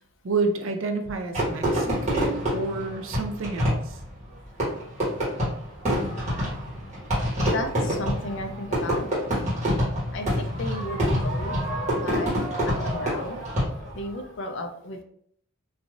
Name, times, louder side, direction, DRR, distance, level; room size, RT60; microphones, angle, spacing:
voice 1, 0.2-4.0, right 3 dB, 60° right, 5 dB, 0.4 m, -29 dB
Fireworks, 1.3-14.1, equal, 30° right, 1.2 m, -27 dB
voice 2, 7.5-9.1 10.1-11.6 12.0-12.4 12.7-13.4 13.9-15.0, left 1 dB, 55° left, 5 dB, 0.4 m, -34 dB
3.2 x 2.5 x 2.4 m, 0.66 s
head